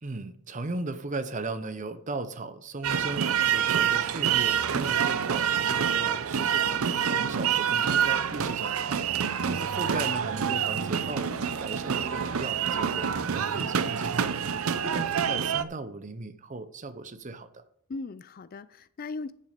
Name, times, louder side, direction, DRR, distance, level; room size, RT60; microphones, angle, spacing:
voice 1, 0.0-6.7 7.1-9.0 9.6-14.3 14.8-17.6, right 3 dB, 35° right, 0.7 m, -37 dB
sound 1, 2.8-15.6, right 8 dB, 75° right, 0.6 m, -27 dB
voice 2, 14.6-15.0 17.9-19.3, left 3 dB, 40° left, 0.4 m, -39 dB
10.5 x 6.7 x 5.1 m
head